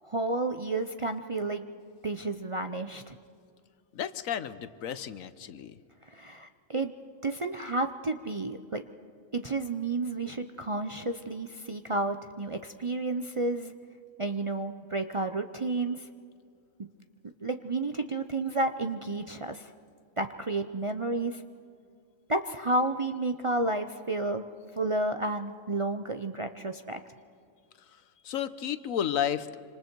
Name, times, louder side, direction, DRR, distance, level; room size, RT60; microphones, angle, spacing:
voice 1, 0.0-1.7 2.0-3.2 6.1-6.9 7.2-8.8 9.3-13.7 14.2-16.1 16.8-16.9 17.4-19.7 20.2-21.4 22.3-24.4 24.7-27.0, right 2 dB, 35° right, 6 dB, 0.5 m, -31 dB
voice 2, 3.9-5.8 27.9-29.6, left 9 dB, 80° left, 13 dB, 1.2 m, -32 dB
26.5 x 26.0 x 4.6 m, 2.3 s
omnidirectional pair, 1.4 m